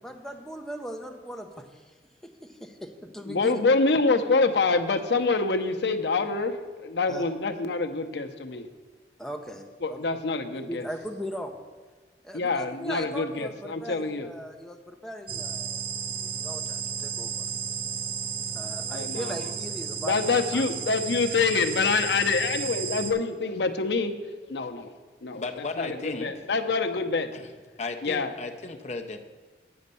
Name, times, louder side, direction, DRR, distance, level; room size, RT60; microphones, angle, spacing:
voice 1, 0.0-1.9 2.4-3.6 7.1-7.2 9.2-10.0 10.5-11.6 12.2-15.8 16.4-17.4 18.5-20.7, equal, 5° left, 3 dB, 0.7 m, -39 dB
voice 2, 3.3-6.6 6.8-8.7 9.8-10.9 12.3-14.3 18.9-19.4 20.0-24.1 24.5-24.9 25.2-27.3 28.0-28.3, left 4 dB, 75° left, 7 dB, 0.7 m, -26 dB
sound 1, 15.3-23.1, right 7 dB, 30° right, 0.6 m, -33 dB
voice 3, 25.3-26.3 27.3-29.2, left 3 dB, 40° left, 5 dB, 0.7 m, -35 dB
8.7 x 5.2 x 6.8 m, 1.4 s
head